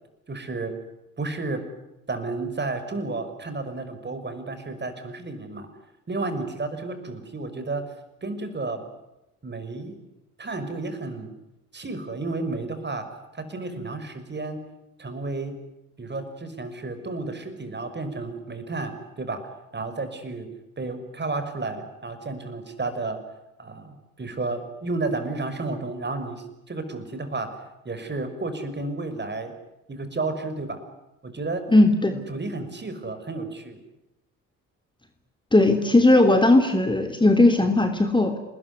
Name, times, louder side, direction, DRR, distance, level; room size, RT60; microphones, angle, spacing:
voice 1, 0.3-0.7 1.2-1.6 2.1-5.7 6.1-7.9 8.2-8.8 9.4-10.0 10.4-11.3 11.7-13.1 13.3-14.6 15.0-15.6 16.0-19.4 19.7-20.5 20.8-23.2 23.6-27.5 27.8-29.5 29.9-30.8 31.2-31.7 32.1-33.8, right 3 dB, 25° right, 9 dB, 6.0 m, -32 dB
voice 2, 31.7-32.1 35.5-38.4, left 2 dB, 10° left, 6 dB, 3.2 m, -18 dB
28.5 x 21.0 x 9.9 m, 0.92 s
figure-of-eight pair, 50°, 40 cm